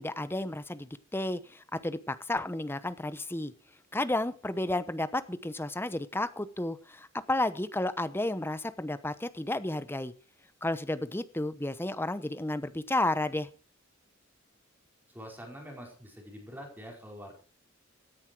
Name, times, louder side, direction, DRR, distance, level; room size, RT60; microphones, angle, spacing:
voice 1, 0.0-3.5 3.9-10.1 10.6-13.5, left 1 dB, 10° left, 13 dB, 0.9 m, -32 dB
voice 2, 15.1-17.3, equal, 10° right, 1 dB, 5.0 m, -45 dB
17.0 x 9.9 x 4.8 m, 0.37 s
head